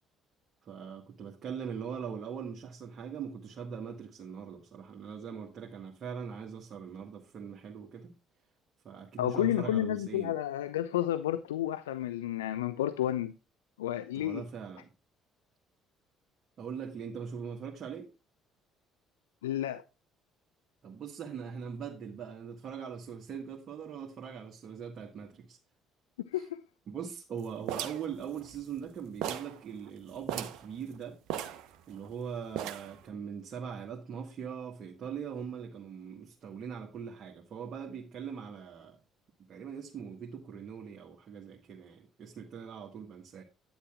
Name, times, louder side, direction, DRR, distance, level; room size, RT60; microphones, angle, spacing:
voice 1, 0.6-8.2 8.8-10.3 14.1-14.9 16.6-18.1 20.8-25.6 26.4-26.5 26.9-31.2 31.9-39.0 39.5-43.4, right 7 dB, 50° right, 1.6 m, -41 dB
voice 2, 9.2-13.4 13.8-14.5 19.4-19.8 26.3-26.6, left 12 dB, 85° left, 0.4 m, -31 dB
sound 1, 27.7-28.9 29.2-29.6 29.9-30.0 30.2-30.7 31.3-32.1 32.6-33.0, right 10 dB, 65° right, 0.9 m, -37 dB
10.0 x 9.9 x 2.4 m
hypercardioid pair, 55°, 0 cm